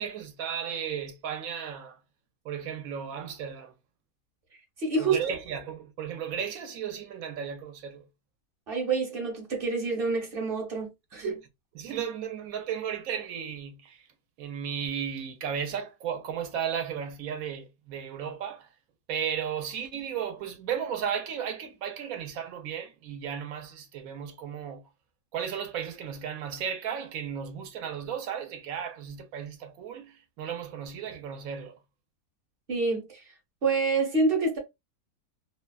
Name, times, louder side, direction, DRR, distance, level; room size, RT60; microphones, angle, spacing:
voice 1, 0.0-2.0 2.4-3.7 5.0-8.1 11.2-11.3 11.8-14.0 14.4-18.7 19.1-24.8 25.3-31.7, right 8 dB, 70° right, 1.0 m, -34 dB
voice 2, 4.8-5.2 8.7-11.4 32.7-33.2 33.6-34.6, right 3 dB, 45° right, 0.9 m, -27 dB
2.7 x 2.2 x 2.3 m
omnidirectional pair, 1.7 m